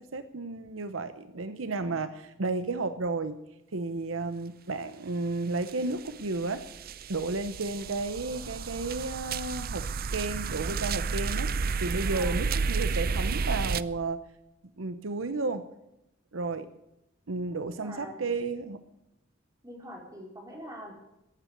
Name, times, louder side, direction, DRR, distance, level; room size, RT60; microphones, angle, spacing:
voice 1, 0.0-3.4 3.7-6.7 7.1-11.5 11.8-14.2 14.8-15.6 16.3-16.7 17.3-18.8, right 3 dB, 75° right, 11 dB, 0.9 m, -32 dB
sound 1, 5.6-5.7 6.1-13.8, right 5 dB, 50° right, 0.5 m, -31 dB
voice 2, 17.5-18.2 19.6-20.9, equal, 15° right, -1 dB, 4.5 m, -44 dB
14.5 x 9.3 x 9.5 m, 0.87 s
head